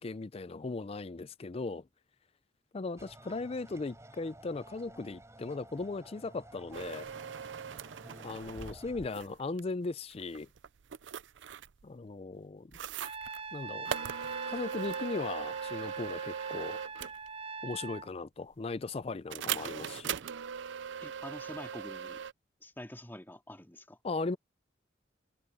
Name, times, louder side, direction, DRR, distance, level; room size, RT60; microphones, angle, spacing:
voice 1, 0.0-1.8 2.7-7.1 8.2-10.5 11.8-12.7 13.5-13.9 14.5-16.8 17.6-20.2 24.0-24.4, left 3 dB, 30° left, 0.4 m, -38 dB
sound 1, 3.0-9.1, right 1 dB, 15° right, 4.3 m, -53 dB
sound 2, 6.7-8.8 9.1-9.6 10.1-11.8 12.7-13.4 13.9-17.3 19.3-22.3, right 8 dB, 75° right, 0.5 m, -39 dB
voice 2, 8.0-8.4 21.0-22.2 22.6-24.0, left 1 dB, 10° left, 3.0 m, -47 dB
Trumpet, 13.0-18.1, right 5 dB, 35° right, 7.3 m, -42 dB
head